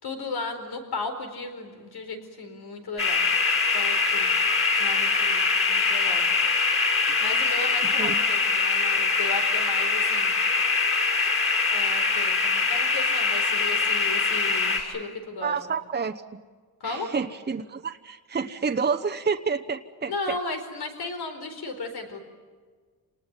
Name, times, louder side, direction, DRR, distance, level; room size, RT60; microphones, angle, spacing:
voice 1, 0.0-3.3 3.7-4.3 4.8-6.2 7.2-10.3 11.2-15.5 16.8-17.1 20.1-22.2, left 3 dB, 80° left, 6 dB, 4.5 m, -35 dB
sound 1, 3.0-14.8, left 4 dB, 35° left, 5.8 m, -23 dB
voice 2, 15.4-16.2 16.8-20.4, right 5 dB, 25° right, 6 dB, 0.9 m, -29 dB
28.0 x 19.5 x 9.0 m, 1.5 s
wide cardioid pair, 120°, 37 cm